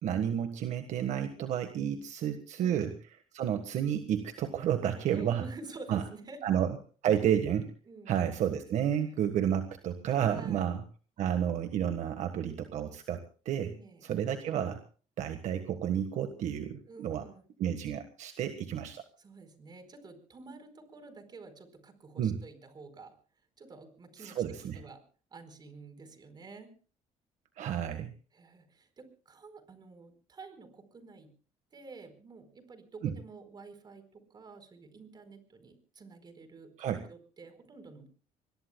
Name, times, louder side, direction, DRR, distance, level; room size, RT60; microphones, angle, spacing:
voice 1, 0.0-2.9 3.3-5.4 5.9-6.0 6.4-6.8 7.0-7.7 8.1-10.8 11.2-13.2 13.4-13.7 14.0-14.8 15.2-17.2 17.6-19.0 22.2-22.4 24.2-24.8 27.6-28.1 33.0-33.1 36.8-37.0, right 9 dB, 70° right, 7 dB, 1.5 m, -31 dB
voice 2, 5.1-6.4 7.8-8.2 10.3-10.7 13.7-14.0 16.9-17.4 19.2-23.1 23.6-25.0 25.3-26.7 28.3-31.3 31.7-38.1, right 3 dB, 35° right, 9 dB, 4.6 m, -50 dB
25.5 x 21.5 x 2.3 m, 0.39 s
cardioid pair, 120°, 13 cm